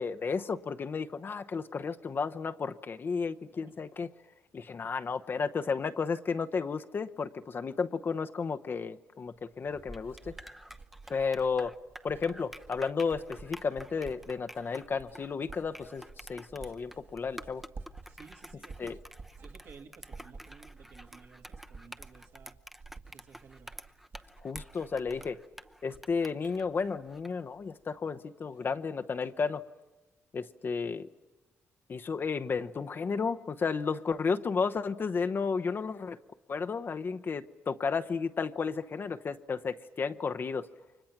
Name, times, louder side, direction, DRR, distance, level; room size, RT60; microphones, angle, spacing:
voice 1, 0.0-4.1 4.5-10.3 11.1-11.7 12.0-17.6 18.8-19.0 24.4-25.4 25.8-29.6 30.3-31.1 31.9-36.2 36.5-40.7, left 5 dB, 45° left, 8 dB, 0.9 m, -33 dB
Writing, 9.3-26.3 26.6-27.0, right 4 dB, 45° right, 1.7 m, -51 dB
sound 1, 9.6-27.4, equal, 5° right, 0.8 m, -50 dB
voice 2, 18.1-19.0 19.4-22.6 23.1-23.7 28.6-28.7, right 5 dB, 70° right, 2 dB, 2.4 m, -55 dB
29.5 x 24.0 x 6.0 m, 1.2 s
cardioid pair, 80°, 5 cm